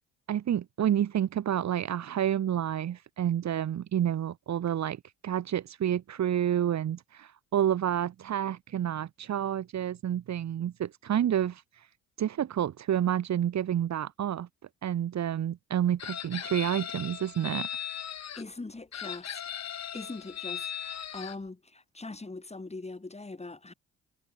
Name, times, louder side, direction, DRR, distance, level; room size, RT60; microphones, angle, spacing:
voice 1, 0.3-11.9 12.2-14.5 14.8-17.7, right 10 dB, 50° right, 3.5 m, -29 dB
Chicken rooster, 16.0-18.4 18.9-21.3, left 9 dB, 50° left, 5.3 m, -38 dB
voice 2, 18.3-19.4 19.9-23.7, left 3 dB, 20° left, 6.2 m, -41 dB
hypercardioid pair, 55°, 35 cm